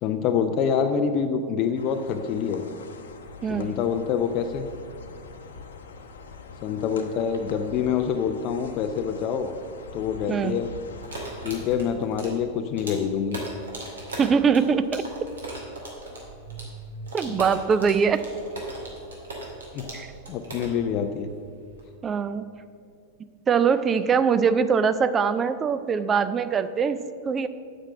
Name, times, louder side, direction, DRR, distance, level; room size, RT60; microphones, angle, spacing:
voice 1, 0.0-2.7 3.5-4.7 6.6-9.5 9.9-10.7 11.4-13.4 17.3-17.4 19.7-19.9 20.3-21.3, left 7 dB, 40° left, 7 dB, 0.5 m, -26 dB
sound 1, 1.8-11.7, left 4 dB, 65° left, 0.9 m, -44 dB
voice 2, 3.4-3.7 10.3-10.6 14.2-15.1 17.1-18.2 19.9-20.1 22.0-22.5 23.5-27.5, right 6 dB, 20° right, 12 dB, 0.5 m, -22 dB
sound 2, 11.0-21.8, right 1 dB, 70° right, 2.3 m, -38 dB
8.9 x 6.1 x 7.5 m, 2.3 s
figure-of-eight pair, 90°, 0 cm